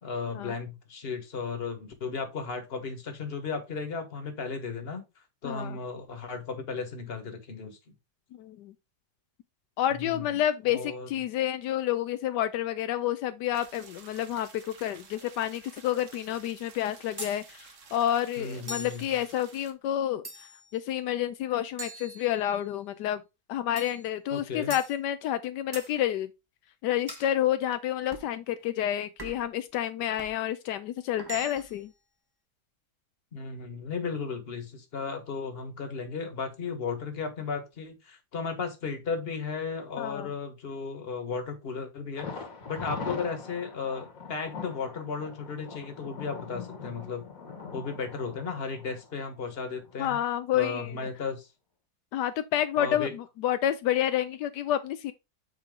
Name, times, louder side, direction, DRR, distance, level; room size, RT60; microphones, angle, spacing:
voice 1, 0.0-5.0 5.4-7.8 9.9-10.4 10.7-11.1 18.4-19.1 24.3-24.7 33.3-42.3 42.7-47.3 47.7-50.2 50.5-51.5 52.8-53.1, left 5 dB, 40° left, 1.6 m, -35 dB
voice 2, 5.4-5.8 8.3-8.7 9.8-23.2 23.5-26.3 26.8-31.9 40.0-40.3 50.0-51.1 52.1-55.1, left 11 dB, 85° left, 1.2 m, -29 dB
sound 1, 13.5-19.7, right 5 dB, 50° right, 1.3 m, -52 dB
sound 2, 17.2-17.4 18.7-19.0 20.2-20.7 21.8-22.7 23.8-24.0 24.7-24.9 25.7-25.9 27.1-27.3 28.1-28.3 29.2-29.5 30.2-30.4 31.2-31.8, right 2 dB, 15° right, 1.0 m, -41 dB
Thunder, 42.2-49.9 50.2-50.3 50.8-50.9, left 5 dB, 55° left, 1.9 m, -41 dB
7.7 x 4.4 x 3.6 m
omnidirectional pair, 1.8 m